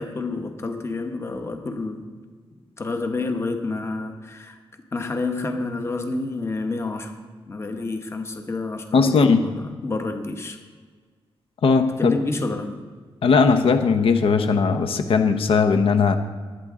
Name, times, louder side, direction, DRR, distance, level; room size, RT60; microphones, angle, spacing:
voice 1, 0.0-2.1 2.8-4.6 4.9-10.6 12.0-12.8, left 3 dB, 25° left, 5 dB, 1.1 m, -29 dB
voice 2, 8.9-9.4 11.6-12.1 13.2-16.1, left 5 dB, 65° left, 7 dB, 0.9 m, -18 dB
20.0 x 9.1 x 3.7 m, 1.5 s
wide cardioid pair, 155°, 10 cm